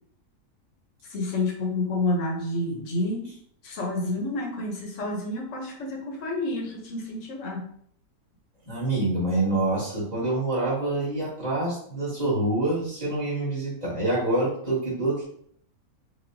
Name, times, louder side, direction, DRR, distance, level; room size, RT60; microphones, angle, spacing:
voice 1, 1.0-3.3 3.6-7.7, left 2 dB, 60° left, -1 dB, 1.2 m, -29 dB
voice 2, 8.7-15.3, right 2 dB, 30° right, -8 dB, 1.8 m, -26 dB
5.0 x 2.6 x 2.6 m, 0.64 s
omnidirectional pair, 1.6 m